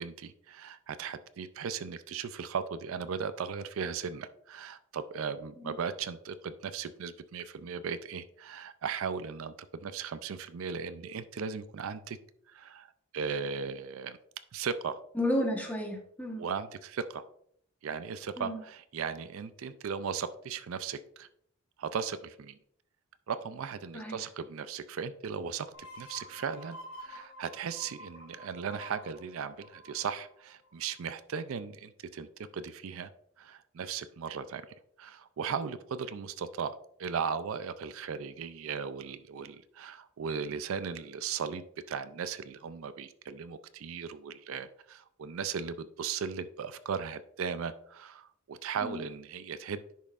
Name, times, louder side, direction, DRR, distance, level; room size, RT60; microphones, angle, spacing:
voice 1, 0.0-12.2 12.5-14.2 14.5-15.0 16.4-17.2 17.8-21.3 21.8-22.6 23.3-25.7 25.9-32.3 32.5-33.1 33.4-34.6 35.0-36.7 37.0-49.9, right 6 dB, 70° right, 12 dB, 0.4 m, -37 dB
voice 2, 15.2-16.4 18.4-18.6 23.9-24.2 48.8-49.0, left 1 dB, 5° left, 0 dB, 1.1 m, -32 dB
sound 1, 25.7-31.2, equal, 75° left, 2.4 m, -49 dB
10.5 x 5.5 x 2.4 m, 0.68 s
head